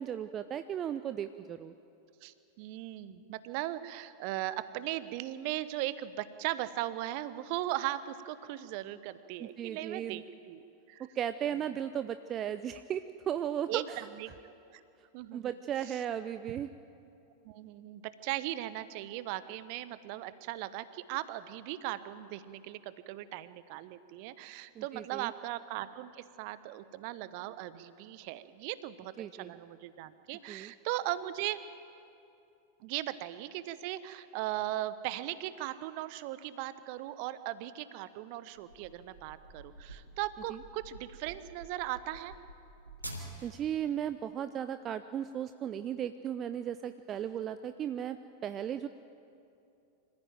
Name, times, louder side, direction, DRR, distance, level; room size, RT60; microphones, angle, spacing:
voice 1, 0.0-1.7 9.4-10.2 11.1-14.1 15.3-16.7 24.8-25.3 29.2-29.6 30.5-30.7 40.5-40.6 43.4-48.2 48.4-48.9, right 9 dB, 30° right, 12 dB, 0.6 m, -36 dB
voice 2, 2.2-11.1 13.7-14.8 15.1-15.5 15.9-16.0 17.4-31.6 32.8-42.3, right 14 dB, 45° right, 15 dB, 0.9 m, -38 dB
sound 1, 38.5-43.7, right 1 dB, 85° right, 3.2 m, -48 dB
25.5 x 15.0 x 9.1 m, 2.7 s
figure-of-eight pair, 90°, 0 cm